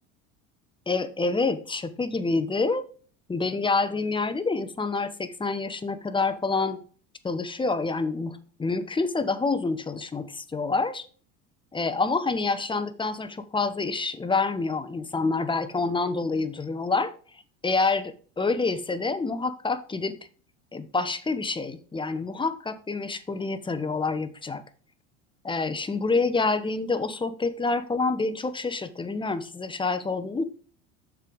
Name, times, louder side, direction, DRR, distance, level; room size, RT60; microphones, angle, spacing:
voice 1, 0.9-2.8 3.3-6.8 7.2-11.1 11.7-20.2 20.7-24.6 25.4-30.4, left 3 dB, 15° left, 11 dB, 0.8 m, -27 dB
6.7 x 4.7 x 5.1 m, 0.42 s
hypercardioid pair, 80°, 38 cm